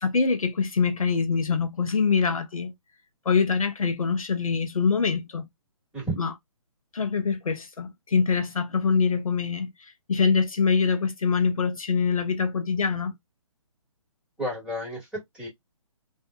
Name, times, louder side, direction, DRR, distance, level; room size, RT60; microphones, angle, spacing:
voice 1, 0.0-2.7 3.3-5.5 6.2-6.3 6.9-13.1, left 5 dB, 75° left, 0.7 m, -24 dB
voice 2, 14.4-15.5, right 1 dB, 5° right, 2.1 m, -32 dB
3.4 x 2.6 x 2.4 m
figure-of-eight pair, 135°, 18 cm